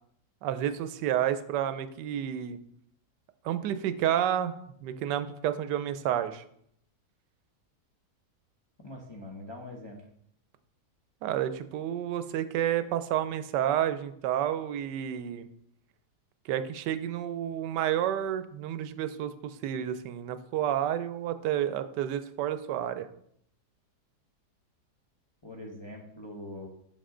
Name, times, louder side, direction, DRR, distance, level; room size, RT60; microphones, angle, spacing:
voice 1, 0.4-2.6 3.4-6.4 11.2-15.5 16.4-23.1, right 10 dB, 90° right, 11 dB, 1.2 m, -30 dB
voice 2, 8.8-10.0 25.4-26.7, left 1 dB, 30° left, -1 dB, 0.5 m, -43 dB
6.7 x 5.4 x 3.7 m, 0.70 s
omnidirectional pair, 1.8 m